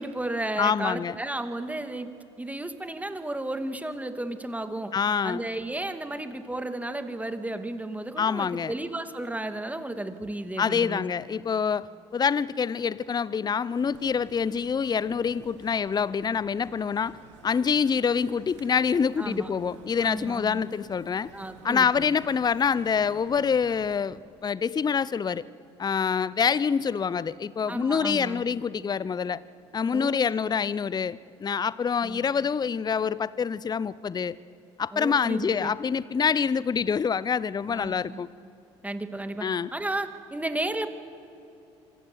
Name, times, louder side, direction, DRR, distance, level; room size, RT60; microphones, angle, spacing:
voice 1, 0.0-2.1 2.4-4.9 5.2-11.0 19.2-19.5 20.0-20.6 21.3-22.1 27.7-28.4 29.9-30.2 32.0-32.2 34.9-35.7 37.7-38.2 38.8-39.4 39.7-40.9, right 1 dB, 10° right, 8 dB, 2.6 m, -33 dB
voice 2, 0.6-1.1 4.9-5.5 8.2-8.7 10.6-11.9 12.1-17.2 17.4-21.3 21.6-25.4 25.8-29.4 29.7-34.3 34.8-38.3 39.4-39.7, left 6 dB, 30° left, 19 dB, 0.7 m, -26 dB
sound 1, 13.7-24.0, right 4 dB, 80° right, 2.9 m, -51 dB
26.0 x 25.0 x 8.2 m, 2.9 s
hypercardioid pair, 55°, 15 cm